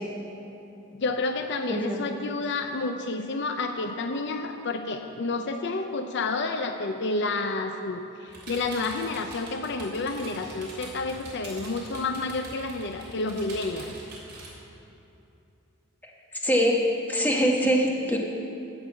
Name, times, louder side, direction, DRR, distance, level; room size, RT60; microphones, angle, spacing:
voice 1, 0.9-13.9, left 3 dB, 55° left, 6 dB, 0.5 m, -30 dB
voice 2, 1.7-2.1 16.3-18.2, equal, 10° left, -1 dB, 1.1 m, -24 dB
sound 1, 8.3-14.5, right 2 dB, 50° right, 3.2 m, -43 dB
16.0 x 5.4 x 7.2 m, 2.8 s
head